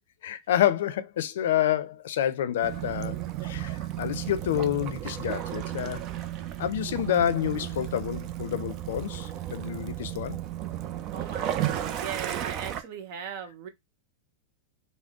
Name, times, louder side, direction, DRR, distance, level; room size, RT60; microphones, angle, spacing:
voice 1, 0.2-6.0 6.6-10.4, left 11 dB, 75° left, 0.5 m, -28 dB
Waves surf / Splash splatter / Trickle dribble, 2.6-12.8, right 12 dB, 40° right, 0.4 m, -34 dB
voice 2, 11.1-13.7, right 8 dB, 55° right, 0.9 m, -38 dB
3.8 x 2.0 x 3.6 m
supercardioid pair, 140°, 0 cm